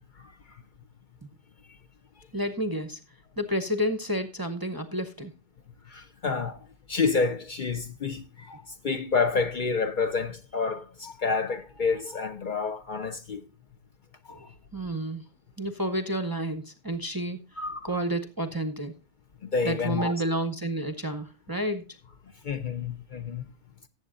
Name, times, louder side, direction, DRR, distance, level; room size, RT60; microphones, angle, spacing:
voice 1, 2.3-3.0 3.4-5.3 14.3-14.5 14.7-15.2 15.6-18.9 19.6-21.8, right 1 dB, 25° right, 0.6 m, -30 dB
voice 2, 5.9-13.4 14.3-14.5 17.6-17.9 19.4-20.2 22.4-23.4, left 4 dB, 50° left, 0.7 m, -29 dB
18.5 x 7.9 x 2.5 m
omnidirectional pair, 1.2 m